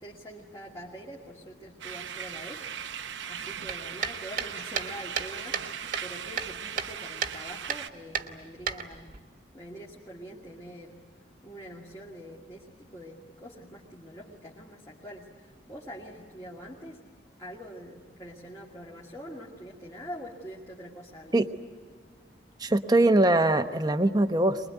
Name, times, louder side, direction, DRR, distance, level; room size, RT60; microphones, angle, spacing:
voice 1, 0.0-2.6 3.3-9.1 9.5-11.1 11.4-17.0 17.4-21.3, equal, 20° left, -4 dB, 2.1 m, -44 dB
sound 1, 1.8-7.9, right 8 dB, 80° right, 0.8 m, -39 dB
sound 2, 3.7-5.7 5.9-6.9 7.2-7.4 7.7-7.8 8.2-9.2, right 7 dB, 45° right, 1.4 m, -32 dB
voice 2, 22.6-24.6, right 2 dB, 20° right, 8 dB, 0.9 m, -22 dB
24.0 x 21.5 x 9.4 m, 1.5 s
head